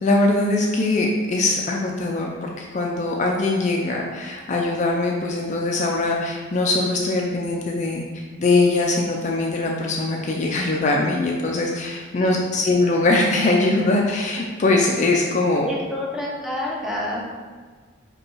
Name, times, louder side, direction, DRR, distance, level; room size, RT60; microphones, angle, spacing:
voice 1, 0.0-15.7, left 2 dB, 40° left, 0 dB, 0.4 m, -22 dB
voice 2, 15.6-17.2, left 1 dB, ahead, -4 dB, 0.7 m, -28 dB
5.0 x 2.3 x 4.4 m, 1.5 s
head